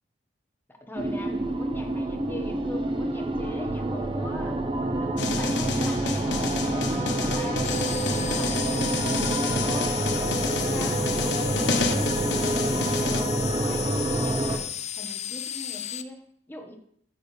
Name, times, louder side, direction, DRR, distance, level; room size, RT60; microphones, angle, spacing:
voice 1, 0.7-4.6 5.0-9.1 9.4-11.2 11.5-14.7 15.0-16.8, left 1 dB, 10° left, 3 dB, 1.2 m, -41 dB
sound 1, 1.0-14.6, right 1 dB, 30° right, 0.8 m, -27 dB
sound 2, 5.2-13.2, left 3 dB, 70° left, 1.1 m, -30 dB
sound 3, 7.6-16.0, left 11 dB, 40° left, 0.4 m, -34 dB
13.5 x 7.2 x 3.3 m, 0.66 s
head